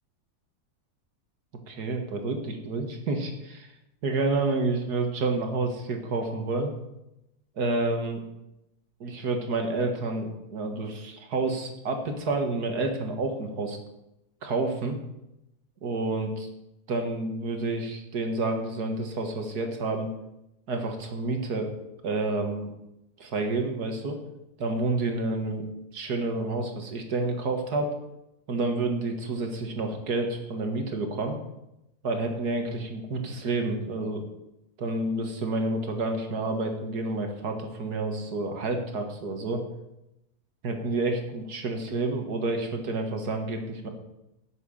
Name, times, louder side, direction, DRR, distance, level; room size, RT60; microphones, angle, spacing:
voice 1, 1.7-3.7 4.0-6.7 7.6-8.2 9.0-13.8 14.4-15.0 15.8-16.5 16.9-20.1 20.7-21.7 22.0-22.7 23.2-24.2 24.6-25.7 25.9-27.9 28.5-31.4 32.0-34.3 34.8-39.6 40.6-43.9, right 2 dB, 85° right, 4 dB, 2.2 m, -29 dB
11.5 x 7.0 x 7.1 m, 0.89 s
omnidirectional pair, 1.6 m